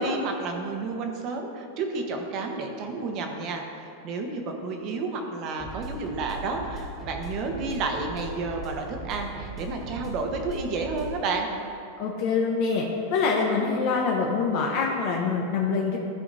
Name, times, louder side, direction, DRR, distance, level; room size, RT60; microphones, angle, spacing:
voice 1, 0.0-11.5, right 3 dB, 40° right, 3 dB, 1.1 m, -31 dB
sound 1, 5.6-11.2, right 2 dB, 20° right, 1.7 m, -39 dB
voice 2, 12.0-12.8 13.1-16.0, left 4 dB, 50° left, -1 dB, 0.9 m, -25 dB
14.0 x 4.9 x 4.1 m, 2.7 s
supercardioid pair, 150°, 0 cm